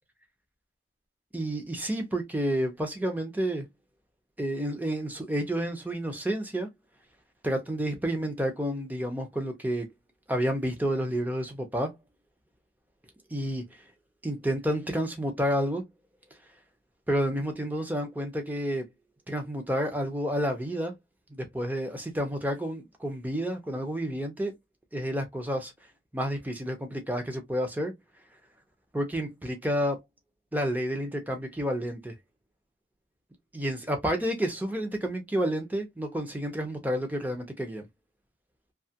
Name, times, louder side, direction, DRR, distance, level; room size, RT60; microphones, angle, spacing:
voice 1, 1.3-3.7 4.4-6.7 7.4-9.9 10.3-11.9 13.3-13.6 14.2-15.8 17.1-18.9 19.3-20.9 21.3-24.5 24.9-25.7 26.1-27.9 28.9-30.0 30.5-32.1 33.5-37.9, equal, 10° right, 0.6 m, -30 dB
2.8 x 2.4 x 2.7 m
head